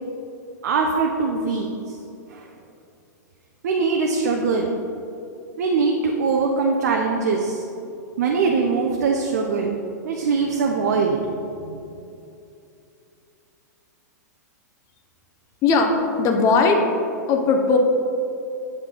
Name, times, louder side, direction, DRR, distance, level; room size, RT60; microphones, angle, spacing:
voice 1, 0.6-1.7 2.3-2.5 3.6-4.7 5.6-7.6 8.2-9.8 10.0-11.2 11.7-11.8, right 4 dB, 65° right, 1 dB, 0.6 m, -22 dB
voice 2, 15.6-16.8 17.3-17.8, left 4 dB, 35° left, 4 dB, 0.8 m, -18 dB
7.7 x 4.7 x 3.8 m, 2.6 s
figure-of-eight pair, 105°, 10 cm